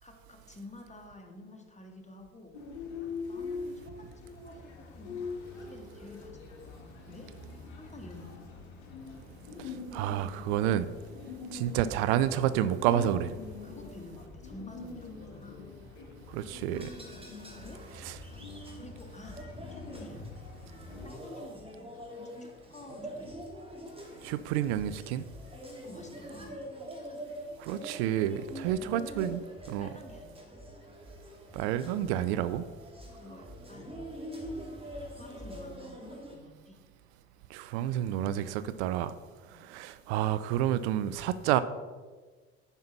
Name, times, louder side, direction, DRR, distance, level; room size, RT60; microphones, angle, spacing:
voice 1, 0.0-2.6 3.3-5.2 5.5-6.7 7.1-7.3 7.8-8.3 13.6-15.6 17.4-18.4 18.8-19.4 19.7-20.2 20.9-23.4 25.8-26.6 28.5-29.3 29.8-30.4 33.2-34.0 35.1-36.0 36.3-36.8 39.5-39.7, left 2 dB, 20° left, 2.2 m, -50 dB
sound 1, 2.5-21.1, left 4 dB, 85° left, 1.5 m, -44 dB
voice 2, 9.6-10.9 11.5-13.3 16.3-16.9 18.0-18.2 24.2-25.2 27.6-29.4 29.7-29.9 31.5-32.6 37.5-39.1 39.6-41.6, right 11 dB, 80° right, 0.5 m, -29 dB
sound 2, 16.7-36.4, equal, 15° right, 2.9 m, -45 dB
9.8 x 5.6 x 5.9 m
hypercardioid pair, 55°, 33 cm